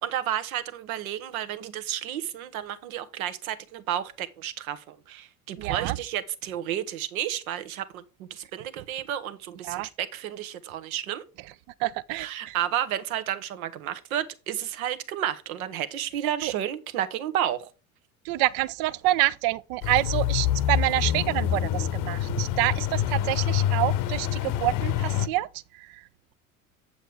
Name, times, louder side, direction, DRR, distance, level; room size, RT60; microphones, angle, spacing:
voice 1, 0.0-11.2 12.1-17.7 23.2-23.3, right 11 dB, 75° right, 1.2 m, -32 dB
voice 2, 5.6-6.0 9.6-9.9 11.8-12.6 16.4-16.5 18.2-25.5 25.9-26.0, right 17 dB, 50° right, 0.6 m, -27 dB
sound 1, 19.8-25.3, left 11 dB, 50° left, 0.9 m, -26 dB
8.0 x 7.6 x 3.4 m
hypercardioid pair, 75°, 43 cm